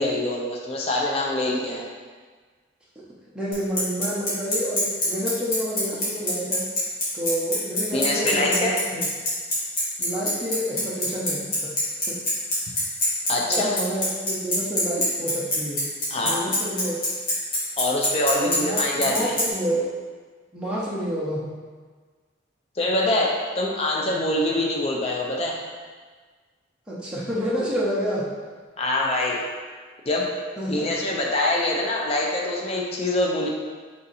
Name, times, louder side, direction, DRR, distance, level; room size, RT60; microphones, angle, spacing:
voice 1, 0.0-1.8 7.9-8.7 13.3-13.7 16.1-16.4 17.8-19.3 22.8-25.6 28.8-29.4 30.1-30.3 30.7-33.5, left 1 dB, 30° left, -2 dB, 0.5 m, -24 dB
voice 2, 3.3-6.7 7.1-9.1 10.0-11.7 12.1-12.2 13.5-15.8 16.2-17.0 18.4-19.9 20.5-21.5 26.9-28.2 30.6-30.9, equal, 5° right, -9 dB, 0.7 m, -29 dB
Bicycle, 3.5-19.4, left 1 dB, 45° left, 1.4 m, -24 dB
3.6 x 2.7 x 4.0 m, 1.5 s
head